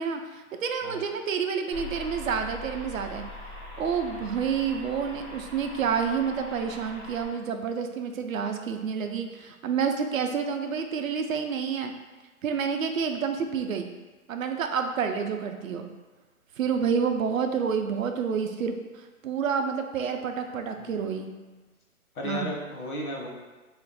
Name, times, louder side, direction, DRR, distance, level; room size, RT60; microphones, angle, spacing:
voice 1, 0.0-3.2 3.8-11.9 12.4-13.9 14.3-15.9 16.6-18.8 19.2-21.3 22.2-22.5, right 6 dB, 70° right, 6 dB, 0.5 m, -29 dB
sound 1, 1.7-7.2, left 1 dB, 20° left, 0.4 m, -42 dB
voice 2, 22.1-23.3, left 1 dB, 80° left, -1 dB, 1.0 m, -34 dB
2.5 x 2.1 x 3.8 m, 1.2 s
hypercardioid pair, 145°, 43 cm